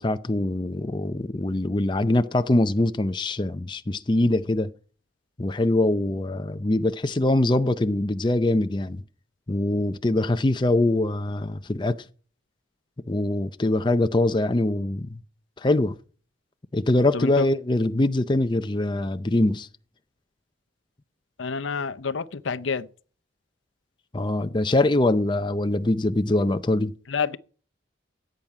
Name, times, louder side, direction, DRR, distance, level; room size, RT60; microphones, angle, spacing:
voice 1, 0.0-4.7 5.4-9.0 9.5-12.0 13.1-15.2 15.6-15.9 16.7-19.7 24.1-26.9, left 2 dB, 25° left, 0.5 m, -23 dB
voice 2, 17.1-17.5 21.4-22.9 27.1-27.4, left 5 dB, 85° left, 0.7 m, -28 dB
16.5 x 8.9 x 4.8 m
head